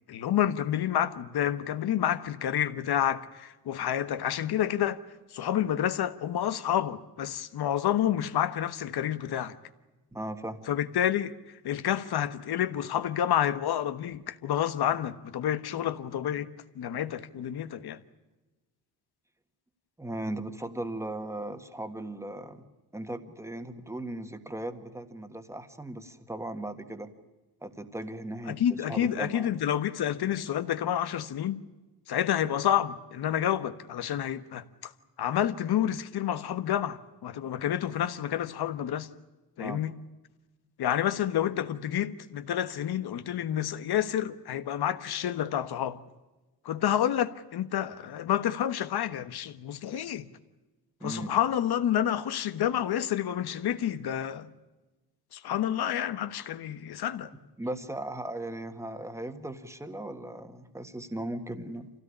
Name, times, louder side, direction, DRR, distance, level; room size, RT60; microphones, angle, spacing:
voice 1, 0.1-5.0 5.3-9.5 10.7-11.3 11.6-16.5 16.7-18.0 28.5-31.6 32.1-34.9 35.2-39.1 39.6-39.9 40.8-46.0 46.6-50.2 51.0-54.5 55.3-57.3, left 10 dB, 80° left, 1.3 m, -29 dB
voice 2, 10.1-10.6 20.0-22.6 22.9-27.1 27.6-29.5 39.6-39.8 51.0-51.3 57.6-61.9, right 1 dB, 5° right, 1.6 m, -37 dB
26.5 x 16.5 x 9.9 m
wide cardioid pair, 165°, 38 cm